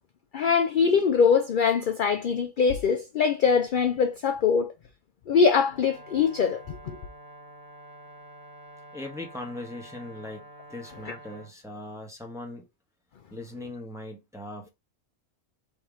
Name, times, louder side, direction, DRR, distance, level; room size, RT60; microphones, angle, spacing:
voice 1, 0.3-4.7 5.3-7.0 11.1-11.2, left 6 dB, 60° left, 0.5 m, -23 dB
Brass instrument, 5.7-11.5, right 1 dB, 20° left, 1.2 m, -48 dB
voice 2, 8.9-12.7 13.3-14.7, left 2 dB, 5° right, 0.9 m, -39 dB
3.6 x 2.8 x 4.7 m
omnidirectional pair, 1.3 m